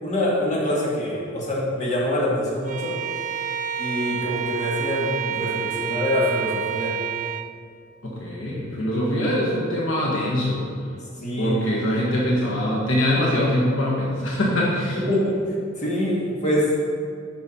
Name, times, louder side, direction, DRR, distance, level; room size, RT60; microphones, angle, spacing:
voice 1, 0.0-2.9 3.8-7.0 11.2-11.6 14.9-16.8, left 1 dB, 35° left, -6 dB, 2.0 m, -25 dB
Bowed string instrument, 2.7-7.5, right 9 dB, 40° right, 0.4 m, -29 dB
voice 2, 8.0-10.6 11.4-15.0, left 1 dB, 70° left, -5 dB, 1.5 m, -23 dB
8.9 x 6.3 x 4.4 m, 2.3 s
head